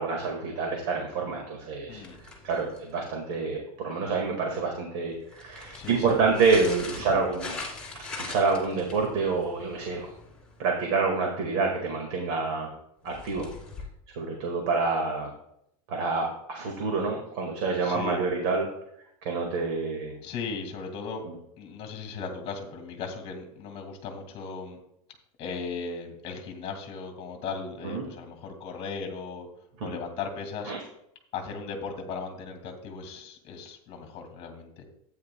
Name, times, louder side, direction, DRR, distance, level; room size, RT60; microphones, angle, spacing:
voice 1, 0.0-2.0 2.4-7.6 7.9-10.1 10.6-12.7 13.0-13.5 14.1-15.3 15.9-18.7 19.2-20.1 21.2-21.3 27.8-28.0 29.8-29.9 30.7-30.8, right 4 dB, 50° right, 1 dB, 1.9 m, -27 dB
sound 1, 1.9-3.1 5.2-10.8 13.1-13.8, left 3 dB, 5° left, 2.3 m, -42 dB
voice 2, 5.7-6.4 7.0-7.5 17.8-18.3 20.2-21.2 21.6-24.8 25.4-29.5 29.8-30.7 31.3-34.8, left 5 dB, 30° left, 4 dB, 2.1 m, -37 dB
13.0 x 9.4 x 2.3 m, 0.75 s
supercardioid pair, 165°, 19 cm